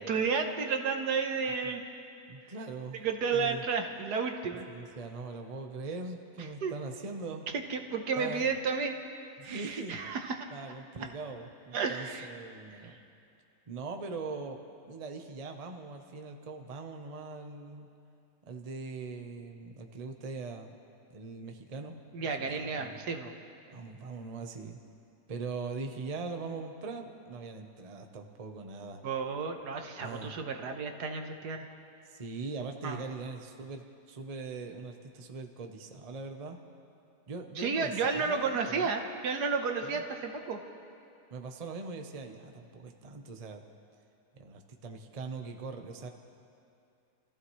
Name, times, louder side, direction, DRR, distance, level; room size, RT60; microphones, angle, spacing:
voice 1, 0.0-1.8 3.0-4.7 6.6-6.7 7.7-8.9 9.4-10.4 11.7-12.3 22.1-23.3 29.0-31.7 32.8-33.0 37.6-40.6, right 5 dB, 70° right, 4 dB, 1.6 m, -32 dB
voice 2, 2.3-3.0 3.3-3.6 4.7-7.4 8.2-8.4 9.4-10.0 10.5-13.0 13.7-14.6 14.9-17.9 18.5-20.7 21.1-21.9 22.4-23.0 23.7-24.8 25.3-29.0 30.0-30.3 32.1-36.6 37.3-38.9 39.8-40.0 41.3-43.6 44.3-46.1, right 4 dB, 30° right, 4 dB, 0.8 m, -41 dB
28.0 x 14.5 x 3.2 m, 2.6 s
omnidirectional pair, 1.8 m